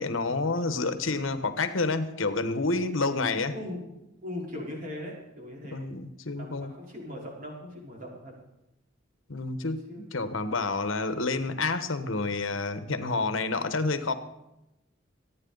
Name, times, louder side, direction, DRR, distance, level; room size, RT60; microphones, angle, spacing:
voice 1, 0.0-3.5 5.7-6.7 9.3-14.1, left 3 dB, 80° left, 10 dB, 1.2 m, -29 dB
voice 2, 3.5-5.8 6.4-8.3 9.9-10.0, left 1 dB, 45° right, -2 dB, 4.5 m, -39 dB
26.0 x 9.6 x 4.0 m, 0.90 s
head